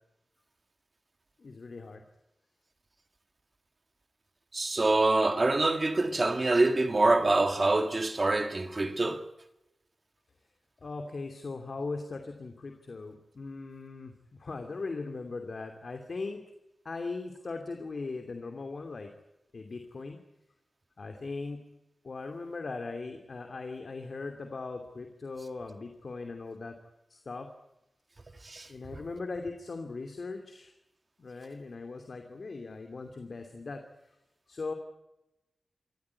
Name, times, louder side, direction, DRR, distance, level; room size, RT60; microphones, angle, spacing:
voice 1, 1.4-2.0 10.8-14.1 14.4-16.4 16.8-19.1 19.5-20.2 21.0-21.6 22.0-26.8 27.1-27.5 28.7-30.7 31.2-33.8 34.5-34.7, left 3 dB, 60° left, 2.7 m, -39 dB
voice 2, 4.5-9.2 28.4-28.7, right 2 dB, 35° right, 1.9 m, -25 dB
27.0 x 14.5 x 9.7 m
wide cardioid pair, 105°, 0 cm